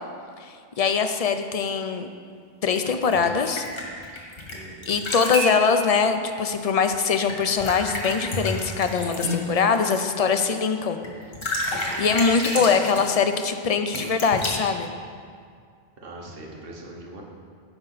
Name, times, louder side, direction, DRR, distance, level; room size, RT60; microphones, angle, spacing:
voice 1, 0.4-2.1 2.6-3.7 4.9-11.0 12.0-14.9, left 5 dB, 45° left, 7 dB, 0.5 m, -22 dB
sound 1, 2.8-4.5 4.8-5.6 7.3-9.9 11.0-11.1 11.3-13.1 13.9-14.5, left 1 dB, 60° left, 1.9 m, -30 dB
voice 2, 4.5-4.9 16.0-17.2, right 1 dB, 60° right, -1 dB, 1.4 m, -41 dB
14.5 x 5.5 x 4.0 m, 2.1 s
omnidirectional pair, 1.1 m